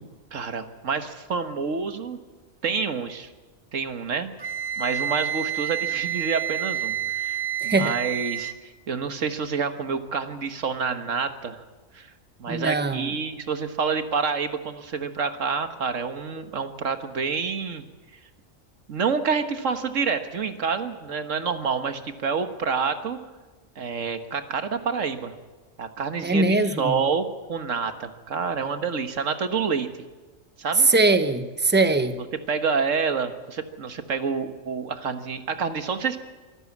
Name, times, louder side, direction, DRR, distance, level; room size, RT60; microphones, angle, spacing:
voice 1, 0.3-2.2 2.6-3.3 3.7-4.3 4.8-11.6 11.9-12.1 12.4-17.8 18.9-23.2 23.7-25.3 25.8-29.9 30.6-30.9 32.5-36.2, right 5 dB, 75° right, 1.7 m, -28 dB
Wind instrument woodwind instrument, 4.4-8.6, right 9 dB, 55° right, 1.9 m, -29 dB
voice 2, 7.6-7.9 12.5-13.1 26.2-27.0 30.8-32.2, right 3 dB, 10° right, 0.9 m, -21 dB
24.0 x 13.5 x 8.5 m
omnidirectional pair, 1.3 m